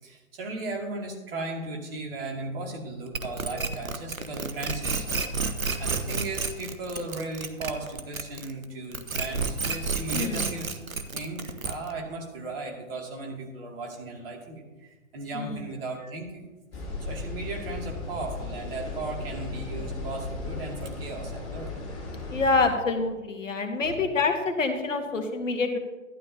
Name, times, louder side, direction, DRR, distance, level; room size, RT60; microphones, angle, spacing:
voice 1, 0.0-5.2 5.8-10.8 11.1-16.3 16.7-21.7 23.8-24.0, right 2 dB, 45° right, 0 dB, 2.5 m, -36 dB
sound 1, 3.1-8.6 8.9-12.0, right 4 dB, 80° right, 1.0 m, -30 dB
voice 2, 10.1-10.5 15.3-15.6 22.3-25.8, left 3 dB, 65° left, 5 dB, 1.5 m, -26 dB
sound 2, 16.7-22.7, left 3 dB, 25° left, 3.6 m, -36 dB
12.0 x 11.5 x 2.8 m, 1.1 s
figure-of-eight pair, 125°, 41 cm